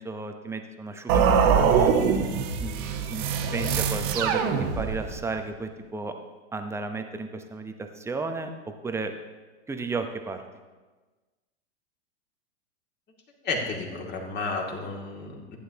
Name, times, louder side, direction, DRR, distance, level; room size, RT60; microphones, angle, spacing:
voice 1, 0.0-1.9 2.6-6.1 6.5-9.1 9.7-10.4, right 3 dB, 5° right, 6 dB, 0.8 m, -33 dB
sound 1, 1.1-5.2, right 6 dB, 45° right, 1.3 m, -23 dB
voice 2, 13.4-15.6, left 3 dB, 30° left, 0 dB, 2.3 m, -32 dB
15.0 x 9.4 x 2.9 m, 1.3 s
hypercardioid pair, 100°, 35 cm